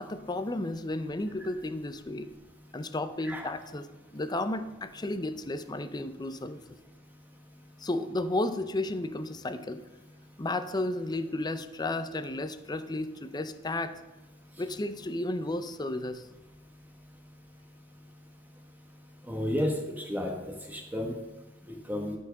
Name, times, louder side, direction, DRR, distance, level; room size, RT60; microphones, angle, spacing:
voice 1, 0.0-2.3 2.7-3.9 4.1-6.6 7.8-9.9 10.4-14.0 14.6-16.3, left 2 dB, 20° left, 10 dB, 0.5 m, -33 dB
voice 2, 19.3-20.3 20.7-21.1 21.9-22.2, left 1 dB, 10° right, 0 dB, 1.3 m, -31 dB
12.5 x 4.6 x 6.4 m, 1.1 s
head